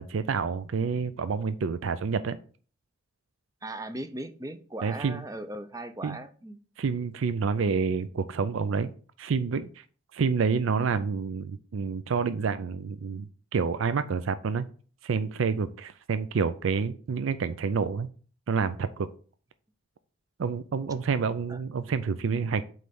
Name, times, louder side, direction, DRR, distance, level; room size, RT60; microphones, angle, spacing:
voice 1, 0.0-2.4 4.8-5.2 6.0-6.2 6.8-8.9 9.2-9.8 10.1-13.3 13.5-14.6 15.0-18.1 18.5-19.1 20.4-22.6, right 5 dB, 75° right, 12 dB, 0.4 m, -28 dB
voice 2, 3.6-6.6 21.5-21.6, right 1 dB, 15° right, 10 dB, 0.5 m, -38 dB
7.8 x 3.2 x 5.3 m, 0.41 s
head